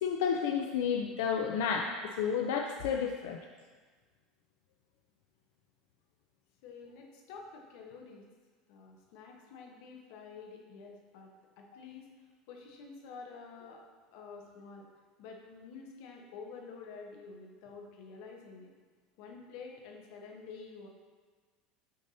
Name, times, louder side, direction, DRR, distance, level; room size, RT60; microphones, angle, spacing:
voice 1, 0.0-3.4, left 7 dB, 85° left, 2 dB, 0.4 m, -31 dB
voice 2, 6.6-8.3 8.7-11.3 11.6-12.1 12.5-13.8 14.1-14.9 15.2-18.7 19.2-20.9, left 5 dB, 55° left, 1 dB, 0.8 m, -49 dB
6.4 x 2.7 x 5.4 m, 1.4 s
cardioid pair, 175°, 0 cm